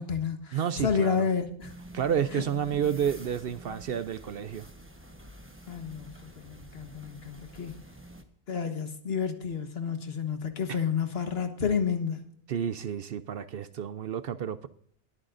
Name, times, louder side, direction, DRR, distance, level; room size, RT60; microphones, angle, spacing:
voice 1, 0.0-1.7 2.3-2.4 5.7-7.8 8.5-12.2, left 6 dB, 60° left, 1.5 m, -30 dB
voice 2, 0.5-1.3 1.9-4.7 10.7-10.8 12.5-14.7, right 8 dB, 60° right, 0.7 m, -30 dB
sound 1, 1.6-8.2, right 1 dB, 10° right, 1.0 m, -48 dB
21.0 x 9.1 x 2.5 m
omnidirectional pair, 1.2 m